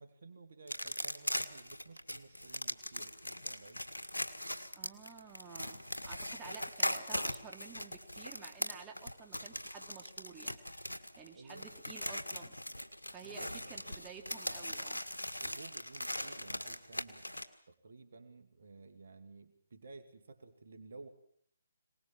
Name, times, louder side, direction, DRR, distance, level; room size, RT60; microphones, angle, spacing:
voice 1, 0.0-3.9 11.3-11.7 13.2-13.7 15.4-17.3 17.7-21.1, right 3 dB, 60° right, 8 dB, 2.4 m, -54 dB
sound 1, 0.7-17.4, left 1 dB, 85° left, 1.9 m, -40 dB
voice 2, 4.7-12.5 13.1-15.0, right 6 dB, 15° right, 2 dB, 3.1 m, -52 dB
25.0 x 19.0 x 7.5 m, 0.65 s
figure-of-eight pair, 140°, 0 cm